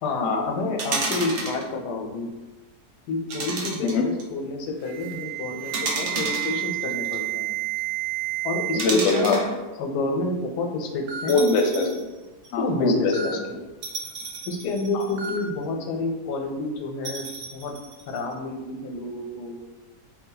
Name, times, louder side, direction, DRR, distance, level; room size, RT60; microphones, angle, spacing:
voice 1, 0.0-2.3 3.1-7.5 8.4-9.4 9.8-11.4 12.6-13.5 14.5-17.3 17.5-17.7 18.1-19.6, left 2 dB, 90° left, 3 dB, 1.2 m, -29 dB
sound 1, 0.8-1.7 3.3-4.2 5.7-7.2 8.8-9.5 11.3-12.0 12.4-12.5 13.8-15.4 17.0-18.2, right 3 dB, 85° right, 0.5 m, -31 dB
Alarm, 4.8-8.8 9.1-9.5 10.4-10.5 11.1-11.3 13.1-13.3 15.2-15.4, right 11 dB, 65° right, 0.8 m, -30 dB
voice 2, 8.7-9.4 11.3-12.1 12.5-13.1 13.5-13.6 14.9-15.0, left 3 dB, 65° left, 2 dB, 0.8 m, -22 dB
3.2 x 2.7 x 3.8 m, 1.2 s
omnidirectional pair, 1.7 m